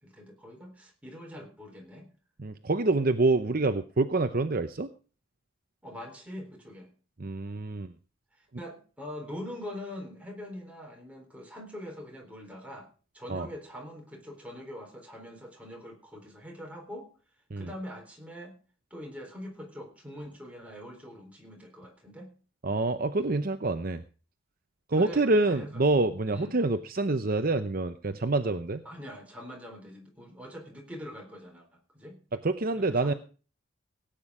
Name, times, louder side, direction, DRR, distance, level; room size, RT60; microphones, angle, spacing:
voice 1, 0.0-2.1 5.8-6.9 8.4-12.9 13.1-17.1 17.6-18.5 18.9-22.3 24.9-25.2 25.5-25.8 26.3-26.6 28.8-32.2 32.7-33.2, equal, 5° right, 0 dB, 4.0 m, -43 dB
voice 2, 2.4-4.9 7.2-7.9 13.3-13.5 17.5-17.7 22.6-24.0 24.9-28.8 32.4-33.1, right 2 dB, 45° right, 9 dB, 0.7 m, -26 dB
17.0 x 9.1 x 4.9 m, 0.38 s
head